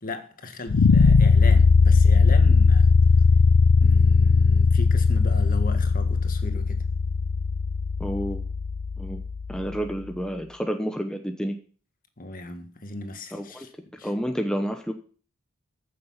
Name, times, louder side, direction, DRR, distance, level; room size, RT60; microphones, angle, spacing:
voice 1, 0.0-2.9 3.8-6.8 12.2-14.1, left 2 dB, 40° left, 1.7 m, -37 dB
sound 1, 0.7-9.7, left 4 dB, 75° left, 0.5 m, -19 dB
voice 2, 8.0-8.4 9.0-9.2 9.5-11.6 13.3-13.7 14.0-14.9, equal, 5° left, 0.9 m, -29 dB
15.0 x 6.9 x 5.7 m
head